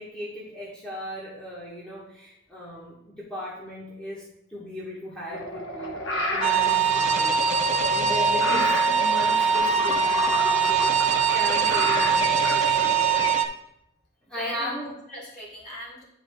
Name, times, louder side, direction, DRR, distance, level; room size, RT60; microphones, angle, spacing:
voice 1, 0.0-6.0 6.3-10.9 11.3-13.4 14.3-15.0, equal, 5° left, -8 dB, 1.2 m, -37 dB
sound 1, 5.3-13.3, left 2 dB, 65° left, 1.0 m, -31 dB
sound 2, 6.4-13.5, right 6 dB, 35° right, 0.5 m, -22 dB
voice 2, 7.6-8.1 14.3-16.0, equal, 40° left, -5 dB, 2.7 m, -39 dB
10.5 x 5.0 x 2.3 m, 0.81 s
head